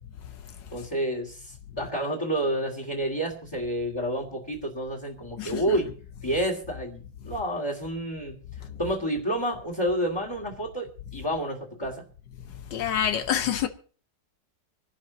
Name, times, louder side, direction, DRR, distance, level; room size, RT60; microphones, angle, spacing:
voice 1, 0.7-5.9 6.2-8.4 8.8-12.0, right 1 dB, 15° left, 2.4 m, -29 dB
voice 2, 5.4-5.8 8.6-8.8 12.5-13.7, left 9 dB, 80° left, 1.6 m, -28 dB
26.0 x 11.5 x 2.9 m
omnidirectional pair, 1.9 m